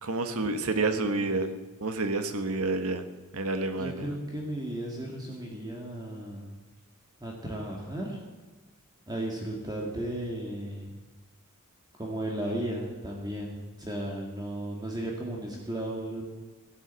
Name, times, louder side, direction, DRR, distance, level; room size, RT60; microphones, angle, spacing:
voice 1, 0.0-3.0 3.3-4.2, right 3 dB, 80° right, 8 dB, 1.5 m, -29 dB
voice 2, 0.8-1.1 3.8-6.5 7.2-8.2 9.1-10.9 11.9-16.2, right 1 dB, 20° right, -1 dB, 2.1 m, -35 dB
15.5 x 11.5 x 8.2 m, 1.2 s
head